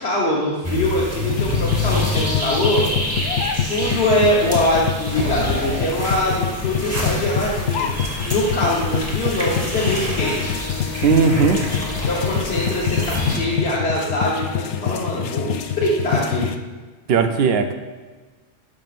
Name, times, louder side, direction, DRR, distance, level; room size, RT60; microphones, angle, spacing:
voice 1, 0.0-2.8 3.7-7.9 8.3-10.5 12.1-16.4, left 1 dB, 65° left, -7 dB, 1.5 m, -23 dB
sound 1, 0.6-13.4, left 1 dB, 15° right, 1.2 m, -27 dB
sound 2, 1.2-16.5, left 8 dB, 80° left, 0.9 m, -26 dB
voice 2, 11.0-11.6 17.1-17.7, right 5 dB, 65° right, 7 dB, 0.8 m, -17 dB
13.0 x 5.5 x 2.5 m, 1.3 s
omnidirectional pair, 1.2 m